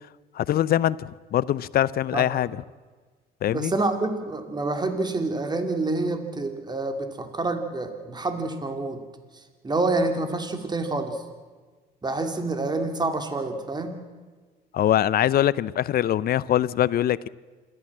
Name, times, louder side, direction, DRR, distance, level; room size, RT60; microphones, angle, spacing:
voice 1, 0.4-2.6 3.4-3.7 14.7-17.3, left 11 dB, 55° left, 0.6 m, -23 dB
voice 2, 2.1-2.5 3.5-9.0 9.6-11.2 12.0-13.9, right 2 dB, 25° right, 2.7 m, -27 dB
27.5 x 13.5 x 7.4 m
supercardioid pair, 85°, 19 cm